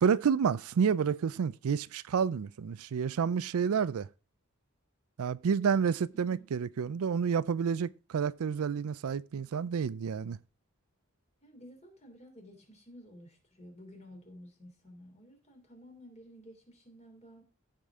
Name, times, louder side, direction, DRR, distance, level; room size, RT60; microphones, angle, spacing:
voice 1, 0.0-4.1 5.2-10.4, right 6 dB, 85° right, 0.4 m, -29 dB
voice 2, 6.1-6.5 11.4-17.4, equal, 30° left, 3.0 m, -53 dB
15.0 x 5.1 x 3.6 m
head